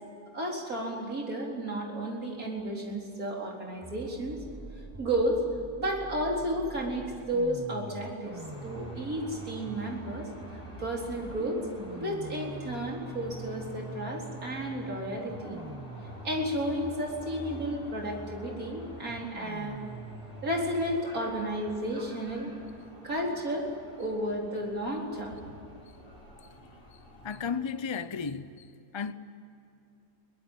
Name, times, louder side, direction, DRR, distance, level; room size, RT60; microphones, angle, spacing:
voice 1, 0.3-4.4 5.0-5.4 5.8-10.3 10.8-15.6 16.2-19.8 20.4-22.5 23.0-23.7 24.0-25.4, right 1 dB, 65° right, 4.6 m, -32 dB
sound 1, 3.8-21.8, right 2 dB, 15° right, 0.9 m, -45 dB
sound 2, 8.2-27.6, left 1 dB, 20° left, 7.8 m, -49 dB
voice 2, 26.9-29.1, left 6 dB, 40° left, 0.4 m, -35 dB
23.0 x 19.0 x 9.1 m
omnidirectional pair, 1.6 m